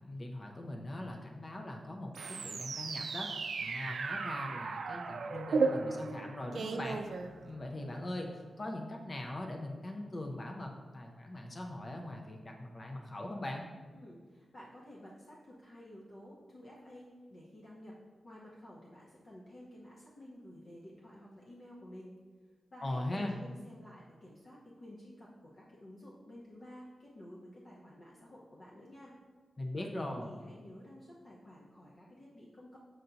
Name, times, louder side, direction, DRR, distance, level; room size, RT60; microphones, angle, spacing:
voice 1, 0.0-3.3 3.6-7.0 7.4-13.7 22.8-23.4 29.6-30.3, left 1 dB, 30° left, 1 dB, 0.5 m, -41 dB
sound 1, 2.1-7.8, right 4 dB, 65° right, 0.3 m, -35 dB
voice 2, 13.9-18.0 18.2-22.1 22.7-29.1 29.8-32.8, equal, 45° left, -6 dB, 0.9 m, -52 dB
7.6 x 2.6 x 5.7 m, 1.4 s
wide cardioid pair, 165°, 0 cm